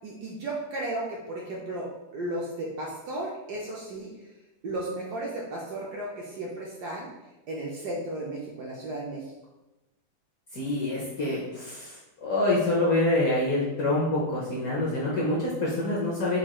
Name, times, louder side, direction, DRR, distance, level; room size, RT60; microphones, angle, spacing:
voice 1, 0.0-4.1 4.6-7.1 7.5-9.2, right 1 dB, 70° right, -4 dB, 1.0 m, -34 dB
voice 2, 10.5-16.4, left 2 dB, 65° left, -5 dB, 0.9 m, -26 dB
4.6 x 2.3 x 2.9 m, 1.0 s
omnidirectional pair, 2.2 m